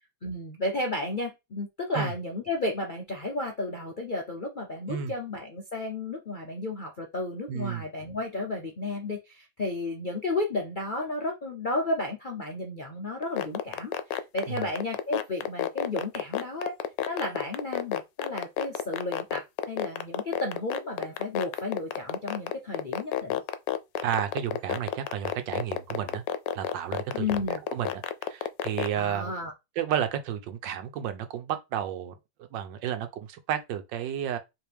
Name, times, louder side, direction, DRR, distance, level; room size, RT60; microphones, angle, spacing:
voice 1, 0.2-16.7 17.1-23.4 27.1-27.6 29.0-29.5, left 2 dB, 60° left, 0.5 m, -33 dB
voice 2, 7.5-7.8 14.5-14.7 24.0-26.2 26.5-27.3 27.5-29.3 29.8-32.1 32.5-34.4, right 9 dB, 90° right, 1.4 m, -32 dB
sound 1, 13.2-28.9, left 12 dB, 80° left, 1.2 m, -29 dB
4.6 x 3.4 x 3.4 m
omnidirectional pair, 1.9 m